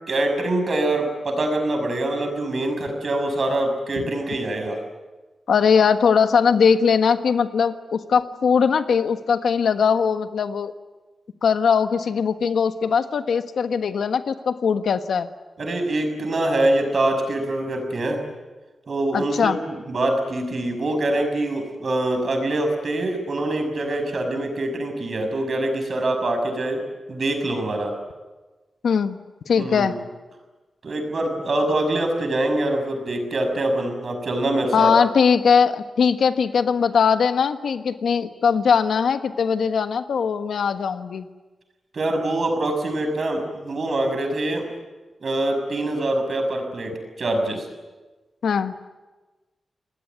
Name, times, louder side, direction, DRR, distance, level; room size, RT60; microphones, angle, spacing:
voice 1, 0.1-4.8 15.6-18.2 18.9-27.9 29.6-30.0 30.8-35.0 41.9-44.7 45.2-47.7, right 1 dB, 45° right, 5 dB, 6.2 m, -24 dB
voice 2, 5.5-10.7 11.4-15.3 19.1-19.6 28.8-29.2 29.5-30.0 34.7-41.3 48.4-48.7, left 6 dB, 80° left, 9 dB, 1.4 m, -20 dB
28.0 x 20.0 x 9.5 m, 1.2 s
wide cardioid pair, 145°, 0 cm